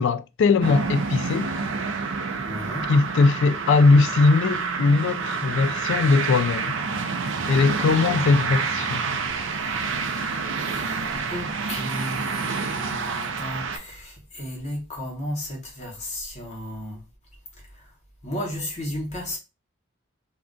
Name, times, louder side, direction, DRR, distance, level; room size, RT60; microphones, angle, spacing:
voice 1, 0.0-1.5 2.9-6.8 7.5-9.2, left 4 dB, 65° left, 0.3 m, -20 dB
sound 1, 0.6-13.8, right 5 dB, 65° right, 0.5 m, -28 dB
voice 2, 2.4-2.9 9.6-17.0 17.7-17.9 18.2-19.4, left 1 dB, 35° left, 0.9 m, -34 dB
2.4 x 2.2 x 3.7 m
head